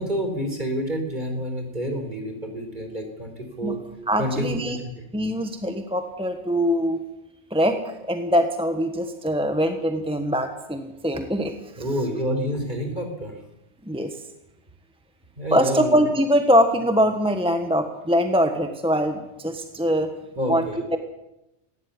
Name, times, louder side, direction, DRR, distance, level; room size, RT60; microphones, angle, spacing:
voice 1, 0.0-3.8 4.2-5.0 11.8-13.3 15.4-16.0 20.4-20.8, equal, 40° right, 5 dB, 4.4 m, -28 dB
voice 2, 4.1-4.8 5.1-7.0 7.5-11.5 13.9-14.2 15.5-20.1 20.5-20.7, equal, 5° right, 6 dB, 1.5 m, -22 dB
19.0 x 16.5 x 9.9 m, 0.91 s
omnidirectional pair, 1.2 m